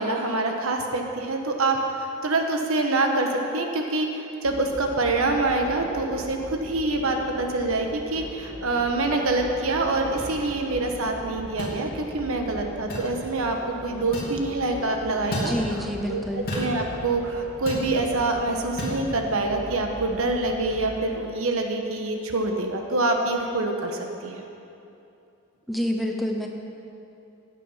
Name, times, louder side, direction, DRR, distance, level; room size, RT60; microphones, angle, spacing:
voice 1, 0.0-15.5 16.1-16.2 16.5-24.5, right 2 dB, 75° right, 3 dB, 1.4 m, -26 dB
sound 1, 4.4-21.0, equal, 55° right, 2.9 m, -41 dB
sound 2, 10.2-10.3 11.6-11.8 12.9-13.1 14.1-14.3 15.3-15.5 16.5-16.7 17.7-17.9 18.8-19.0, equal, 45° left, 3.3 m, -31 dB
voice 2, 15.4-16.5 25.7-26.5, equal, ahead, 1 dB, 0.9 m, -27 dB
15.5 x 8.2 x 5.7 m, 2.7 s
head